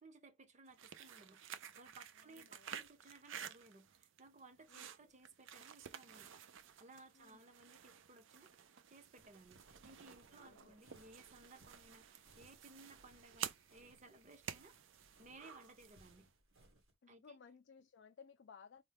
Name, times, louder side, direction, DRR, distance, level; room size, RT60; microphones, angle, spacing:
voice 1, 0.0-1.4 1.8-6.4 6.8-14.8 15.2-16.3 17.1-17.4, right 2 dB, 35° right, 0.8 m, -61 dB
sound 1, 0.7-16.3, right 9 dB, 75° right, 0.5 m, -52 dB
voice 2, 2.2-2.9 4.7-5.1 7.1-7.5 10.3-10.8 17.0-18.8, left 6 dB, 60° left, 0.4 m, -61 dB
sound 2, 9.2-16.9, right 2 dB, 90° right, 1.6 m, -68 dB
4.3 x 2.2 x 3.4 m
head